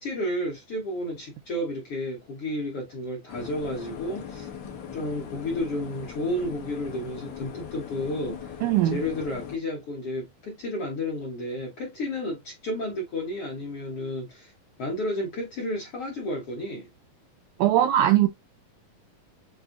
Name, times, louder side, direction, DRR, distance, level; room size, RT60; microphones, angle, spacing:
voice 1, 0.0-4.5 4.9-8.6 8.8-14.5 14.8-16.9, left 1 dB, 65° left, 1.4 m, -32 dB
sound 1, 3.3-9.6, left 7 dB, 80° left, 1.0 m, -40 dB
voice 2, 8.6-9.0 17.6-18.3, right 12 dB, 85° right, 1.7 m, -20 dB
7.8 x 2.7 x 2.4 m
omnidirectional pair, 4.1 m